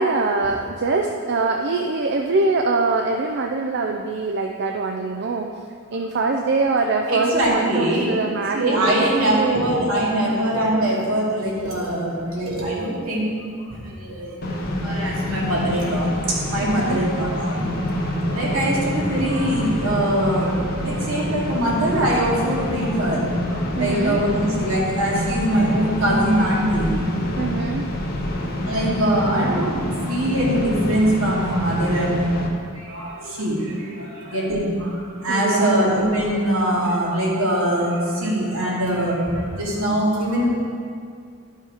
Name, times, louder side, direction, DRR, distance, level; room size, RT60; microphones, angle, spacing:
voice 1, 0.0-5.5 5.9-8.8 9.3-9.7 16.6-17.0 23.8-24.2 27.4-27.9 35.3-35.9, right 3 dB, 55° right, 2 dB, 0.5 m, -23 dB
voice 2, 7.1-8.1 8.5-13.3 13.7-14.4 14.8-27.1 28.3-28.4 28.7-40.5, right 1 dB, 75° right, -6 dB, 2.7 m, -23 dB
sound 1, 14.4-32.5, left 1 dB, 45° left, 1.2 m, -26 dB
12.0 x 5.5 x 4.9 m, 2.1 s
head